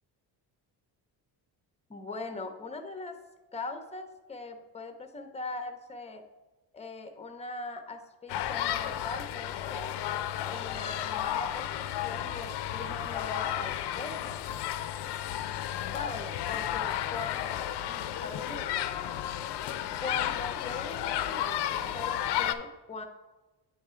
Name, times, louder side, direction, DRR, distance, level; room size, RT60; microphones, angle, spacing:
voice 1, 1.9-3.2 3.5-6.2 6.7-10.0 10.4-14.4 15.9-23.1, left 3 dB, 15° left, 6 dB, 0.6 m, -41 dB
sound 1, 8.3-22.6, left 11 dB, 85° left, 0.5 m, -33 dB
8.9 x 3.6 x 4.3 m, 1.2 s
cardioid pair, 135°, 40 cm